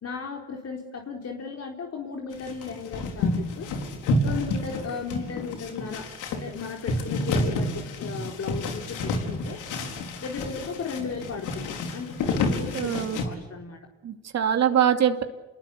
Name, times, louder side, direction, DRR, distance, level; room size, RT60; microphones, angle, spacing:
voice 1, 0.0-3.7 4.2-9.6 10.2-13.8, left 5 dB, 55° left, 1 dB, 4.2 m, -36 dB
sound 1, 2.3-13.3, left 2 dB, 90° left, 4.6 m, -29 dB
voice 2, 12.7-13.2 14.0-15.2, right 9 dB, 60° right, 6 dB, 2.7 m, -23 dB
29.0 x 22.0 x 8.5 m, 1.1 s
cardioid pair, 90°, 30 cm